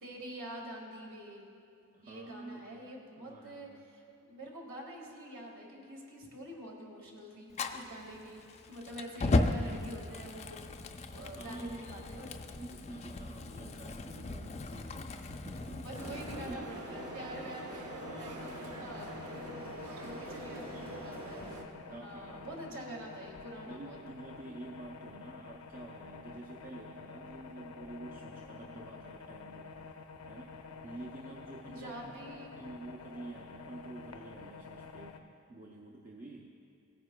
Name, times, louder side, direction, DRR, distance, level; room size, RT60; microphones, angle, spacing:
voice 1, 0.0-1.5 2.0-8.4 8.7-10.6 11.1-12.4 15.6-21.6 21.9-24.0 31.7-32.6, right 1 dB, 60° right, -1 dB, 1.8 m, -46 dB
voice 2, 1.9-2.8 3.2-3.8 11.4-12.2 12.5-15.9 16.3-16.7 18.0-18.9 20.7-21.1 21.9-23.1 23.7-29.9 30.3-30.5 30.8-36.5, right 2 dB, 40° right, -1 dB, 0.6 m, -49 dB
Fire, 7.5-16.5, left 2 dB, 30° left, 0.4 m, -36 dB
sound 1, 15.9-21.6, right 2 dB, 85° right, 1.1 m, -44 dB
sound 2, 16.9-35.2, left 4 dB, 85° left, 0.6 m, -49 dB
16.5 x 9.4 x 2.3 m, 2.5 s
head